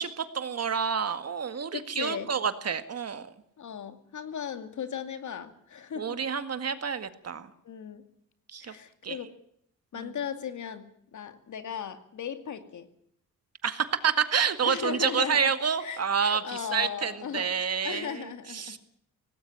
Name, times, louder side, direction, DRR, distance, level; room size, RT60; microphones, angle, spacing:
voice 1, 0.0-3.3 6.0-7.5 8.5-8.8 9.0-9.2 10.0-10.1 13.6-18.2 18.5-18.8, right 7 dB, 50° right, 10 dB, 2.0 m, -28 dB
voice 2, 1.7-2.3 3.6-6.2 7.6-8.0 8.6-9.3 9.9-12.9 14.6-15.5 15.8-17.5 17.8-18.8, left 8 dB, 65° left, 9 dB, 2.5 m, -37 dB
18.5 x 17.0 x 10.0 m, 0.68 s
cardioid pair, 85°, 32 cm